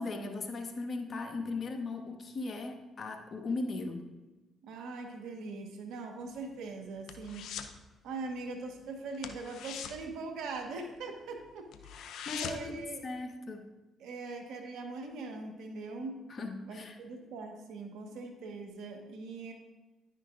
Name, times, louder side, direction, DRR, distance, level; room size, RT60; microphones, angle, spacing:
voice 1, 0.0-4.0 11.9-13.7 16.3-17.0, left 3 dB, 50° left, 5 dB, 1.3 m, -38 dB
voice 2, 4.6-7.5 8.0-11.9 12.3-13.0 14.0-16.2 16.7-19.5, right 3 dB, 80° right, 4 dB, 1.3 m, -41 dB
sound 1, 6.2-7.8 8.1-8.4 8.6-8.8 9.1-11.0 11.4-11.5 11.7-12.8 13.2-13.3, left 7 dB, 75° left, 0.6 m, -42 dB
10.5 x 9.8 x 2.5 m, 1.1 s
supercardioid pair, 55°, 0 cm